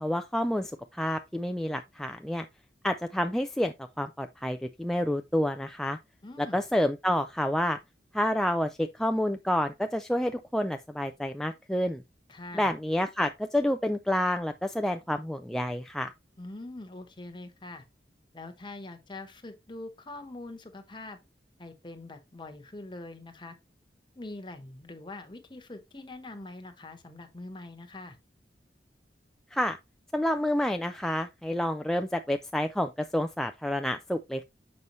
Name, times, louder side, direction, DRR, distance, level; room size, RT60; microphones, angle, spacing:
voice 1, 0.0-2.5 2.8-6.0 6.5-7.8 8.1-12.0 12.5-16.1 29.5-29.8 30.1-34.4, left 1 dB, 5° left, 0.3 m, -29 dB
voice 2, 6.2-6.6 12.3-12.7 16.4-17.8 18.3-21.2 21.6-23.6 24.1-28.2, left 2 dB, 25° left, 1.1 m, -43 dB
6.8 x 5.4 x 3.0 m
head